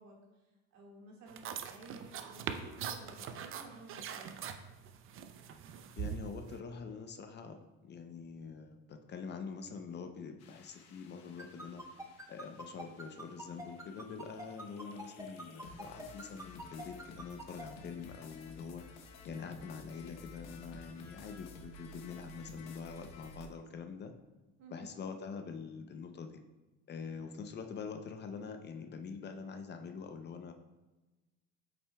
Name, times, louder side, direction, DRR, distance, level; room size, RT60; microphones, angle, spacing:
voice 1, 0.0-4.4 24.6-25.0, right 2 dB, 65° right, -1 dB, 1.9 m, -54 dB
sound 1, 1.3-6.6, right 8 dB, 40° right, 0.5 m, -42 dB
voice 2, 6.0-11.8 12.3-18.9 19.2-24.1 24.7-26.4 26.9-30.5, left 5 dB, 35° left, 6 dB, 0.6 m, -45 dB
sound 2, 10.4-23.5, left 3 dB, 55° left, 0.9 m, -54 dB
sound 3, 11.4-17.6, right 1 dB, 10° right, 0.9 m, -45 dB
8.1 x 6.0 x 2.2 m, 1.1 s
supercardioid pair, 110°, 31 cm